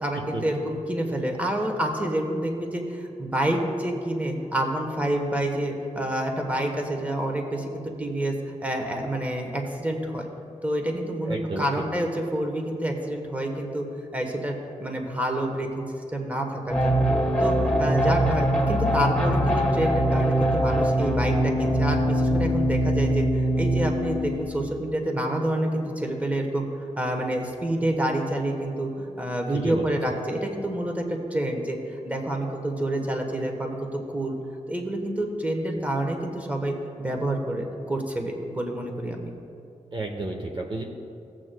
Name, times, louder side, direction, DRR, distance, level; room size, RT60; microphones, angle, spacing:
voice 1, 0.0-10.3 10.6-13.8 14.1-15.8 16.1-17.1 17.4-23.3 23.6-26.7 27.0-33.9 34.1-34.4 34.7-39.3, right 1 dB, 10° right, 2 dB, 1.1 m, -28 dB
voice 2, 11.2-11.7 29.5-29.9 39.9-40.8, right 2 dB, 40° right, 0 dB, 0.8 m, -31 dB
sound 1, 16.7-24.6, equal, 5° left, 1.8 m, -23 dB
15.5 x 7.6 x 2.2 m, 2.6 s
wide cardioid pair, 105°, 13 cm